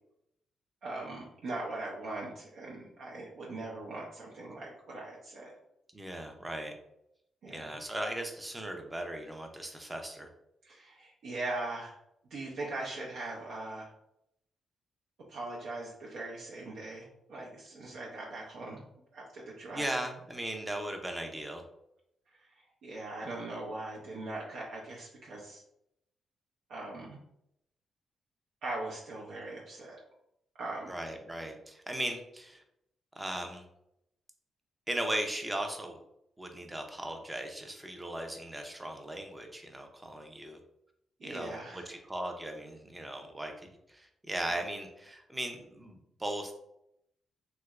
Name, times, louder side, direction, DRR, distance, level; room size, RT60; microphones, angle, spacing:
voice 1, 0.8-5.5 7.4-7.7 10.6-12.0 12.3-13.9 15.3-18.8 19.1-19.9 22.3-22.5 22.8-25.6 26.7-27.2 28.6-30.0 30.6-30.9 41.2-42.0, right 2 dB, 75° right, -4 dB, 0.6 m, -40 dB
voice 2, 5.9-6.7 7.5-10.3 19.7-21.6 30.9-32.6 33.2-33.6 34.9-36.0 36.4-40.6 41.2-46.5, right 1 dB, 10° right, 3 dB, 0.5 m, -38 dB
3.2 x 2.9 x 2.4 m, 0.78 s
cardioid pair, 135°, 0 cm